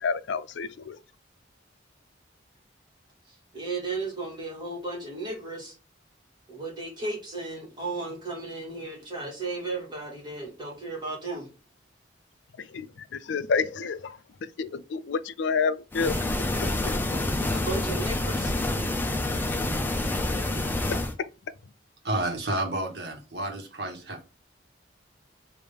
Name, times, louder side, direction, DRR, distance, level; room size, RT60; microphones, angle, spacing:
voice 1, 0.0-1.0 12.7-12.9 13.2-14.2 14.6-16.2, left 5 dB, 70° left, 0.4 m, -28 dB
voice 2, 3.5-5.8 6.5-11.5 17.5-18.5, right 3 dB, 25° right, 1.8 m, -34 dB
sound 1, 15.9-21.1, left 1 dB, 10° left, 0.5 m, -27 dB
voice 3, 22.0-24.3, right 1 dB, 60° right, 1.2 m, -30 dB
5.0 x 2.6 x 3.4 m
head